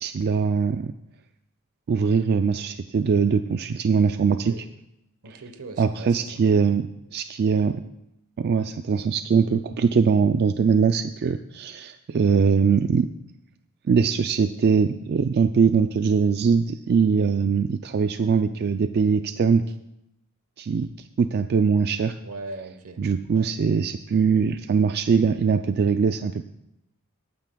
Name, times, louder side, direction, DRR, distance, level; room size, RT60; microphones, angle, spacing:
voice 1, 0.0-0.9 1.9-4.5 5.8-7.8 8.4-13.1 13.9-19.6 20.6-20.9 21.2-22.1 23.0-26.5, right 5 dB, 45° right, 9 dB, 0.3 m, -22 dB
voice 2, 4.3-4.6 5.2-6.4 22.2-23.0 23.3-23.5, right 2 dB, 80° right, 8 dB, 1.0 m, -39 dB
20.0 x 9.1 x 2.3 m, 0.86 s
head